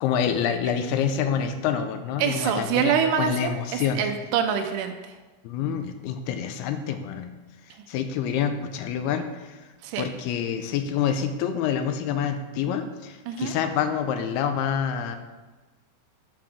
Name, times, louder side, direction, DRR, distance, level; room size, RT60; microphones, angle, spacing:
voice 1, 0.0-4.0 5.4-7.4 7.9-9.6 10.0-15.2, left 8 dB, 90° left, 8 dB, 2.7 m, -27 dB
voice 2, 2.2-5.1 9.8-10.1 13.3-13.5, right 8 dB, 90° right, 6 dB, 1.9 m, -26 dB
11.5 x 6.9 x 3.5 m, 1.2 s
omnidirectional pair, 4.5 m